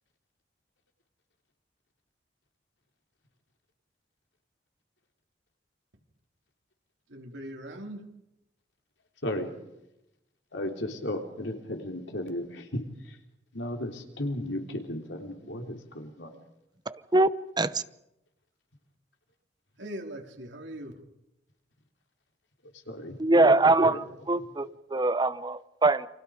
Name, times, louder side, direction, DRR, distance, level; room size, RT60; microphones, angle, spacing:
voice 1, 7.1-8.0 19.8-20.9, right 1 dB, 85° right, 2 dB, 3.4 m, -40 dB
voice 2, 10.5-12.6 13.5-16.3 22.9-23.2 23.4-24.0, left 1 dB, 85° left, 3 dB, 3.5 m, -34 dB
voice 3, 16.9-17.3 17.6-17.8 23.2-26.1, right 2 dB, 25° right, 14 dB, 0.8 m, -23 dB
29.5 x 25.0 x 5.1 m, 0.87 s
head